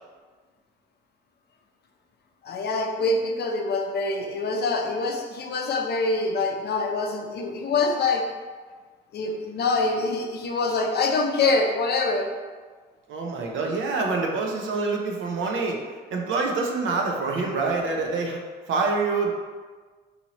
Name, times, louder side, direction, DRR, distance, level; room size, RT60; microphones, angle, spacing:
voice 1, 2.4-8.2 9.1-12.3, left 3 dB, 55° left, 2 dB, 0.6 m, -25 dB
voice 2, 13.1-15.8 16.1-18.4 18.7-19.3, right 3 dB, 75° right, 0 dB, 0.7 m, -26 dB
4.1 x 2.7 x 2.9 m, 1.5 s
cardioid pair, 90°, 20 cm